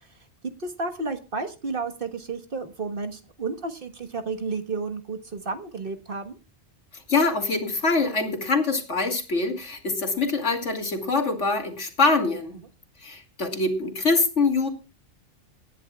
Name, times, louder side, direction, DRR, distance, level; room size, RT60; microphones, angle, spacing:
voice 1, 0.6-6.4, right 3 dB, 50° right, 6 dB, 1.5 m, -32 dB
voice 2, 6.9-12.6 13.0-14.7, left 3 dB, 85° left, 4 dB, 2.7 m, -24 dB
24.0 x 10.5 x 2.3 m, 0.30 s
omnidirectional pair, 1.2 m